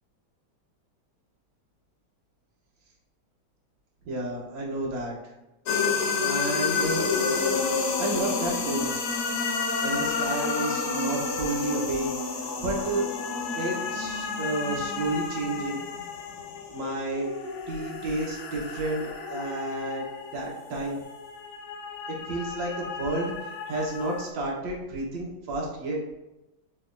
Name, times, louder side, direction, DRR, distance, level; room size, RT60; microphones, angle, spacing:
voice 1, 4.1-5.1 6.2-7.4 8.0-9.0 9.8-12.1 12.4-13.1 13.6-15.8 16.7-17.3 17.7-20.1 20.3-21.0 22.1-26.0, right 2 dB, 70° right, -3 dB, 1.8 m, -31 dB
sound 1, 5.7-24.3, left 5 dB, 70° left, 1.3 m, -30 dB
6.6 x 3.0 x 2.5 m, 0.97 s
omnidirectional pair, 2.1 m